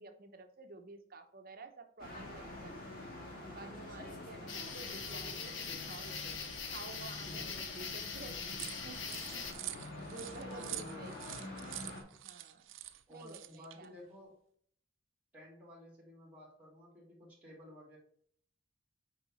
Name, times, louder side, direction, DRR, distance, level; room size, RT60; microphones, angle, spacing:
voice 1, 0.0-3.1 3.5-11.2 12.0-12.7 13.1-13.9, right 3 dB, 50° right, 6 dB, 0.9 m, -52 dB
sound 1, 2.0-12.0, left 1 dB, 45° left, 2.3 m, -47 dB
sound 2, 4.5-9.5, left 5 dB, 70° left, 1.3 m, -42 dB
sound 3, 8.6-13.8, right 14 dB, 80° right, 0.6 m, -46 dB
voice 2, 10.3-11.9 13.1-14.4 15.3-18.0, left 1 dB, 10° right, -4 dB, 2.7 m, -53 dB
8.8 x 4.8 x 4.2 m, 0.62 s
head